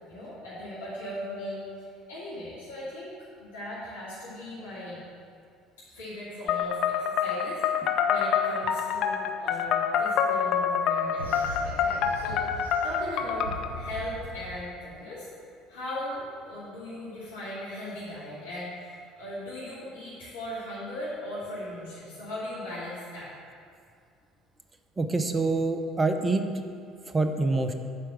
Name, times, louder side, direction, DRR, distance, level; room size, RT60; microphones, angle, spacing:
voice 1, 0.1-1.6 2.1-3.1 3.4-5.0 5.9-15.3 15.7-23.3, left 1 dB, 75° left, -12 dB, 2.4 m, -38 dB
sound 1, 6.5-13.7, left 7 dB, 50° left, 0.5 m, -27 dB
sound 2, 11.2-14.6, equal, 80° right, 0.6 m, -39 dB
voice 2, 25.0-26.4 27.1-27.7, right 3 dB, 20° right, 7 dB, 0.7 m, -25 dB
7.8 x 4.6 x 7.1 m, 2.2 s
figure-of-eight pair, 55°, 0 cm